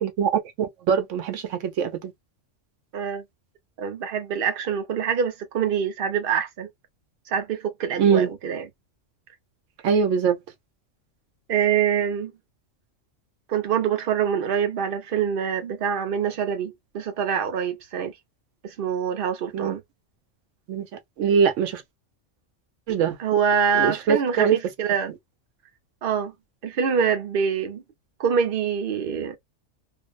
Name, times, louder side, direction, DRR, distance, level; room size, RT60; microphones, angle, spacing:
voice 1, 0.0-0.3 0.6-2.1 8.0-8.3 9.8-10.4 19.5-19.7 20.7-20.9 21.2-21.8 22.9-23.2 23.7-24.6, right 7 dB, 80° right, 0.9 m, -22 dB
voice 2, 2.9-3.2 3.8-6.7 7.3-8.7 11.5-12.3 13.5-18.1 18.6-19.8 23.2-25.1 26.0-26.3 26.6-27.8 28.2-29.4, right 7 dB, 55° right, 0.7 m, -25 dB
2.5 x 2.0 x 2.3 m
omnidirectional pair, 1.3 m